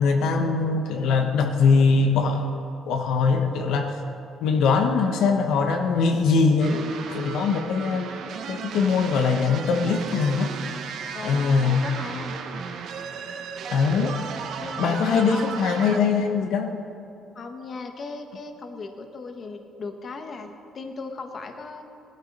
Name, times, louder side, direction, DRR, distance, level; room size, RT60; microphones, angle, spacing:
voice 1, 0.0-2.5 2.9-3.9 4.4-6.8 7.1-8.1 8.5-10.5 11.2-11.8 13.7-14.1 14.8-16.8, left 4 dB, 75° left, 4 dB, 1.1 m, -22 dB
sound 1, 6.6-16.0, right 6 dB, 60° right, 1.1 m, -35 dB
voice 2, 11.1-12.4 14.0-14.2 14.6-15.6 17.3-21.8, left 3 dB, 40° left, 5 dB, 1.2 m, -37 dB
17.5 x 12.0 x 5.3 m, 2.8 s
cardioid pair, 125°, 0 cm